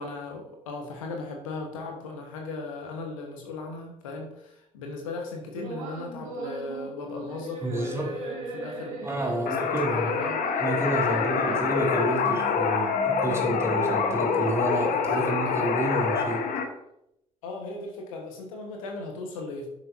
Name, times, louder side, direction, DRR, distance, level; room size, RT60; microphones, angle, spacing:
voice 1, 0.0-10.4 11.0-11.6 14.9-15.3 17.4-19.7, left 3 dB, 75° left, 2 dB, 1.4 m, -37 dB
sound 1, 5.5-14.5, right 3 dB, 75° right, 1.8 m, -39 dB
voice 2, 7.6-8.1 9.0-10.1 10.6-16.4, right 1 dB, 15° right, -1 dB, 3.5 m, -30 dB
sound 2, 9.5-16.6, left 5 dB, 55° left, 1.2 m, -26 dB
11.5 x 7.4 x 2.7 m, 0.82 s
figure-of-eight pair, 50°, 17 cm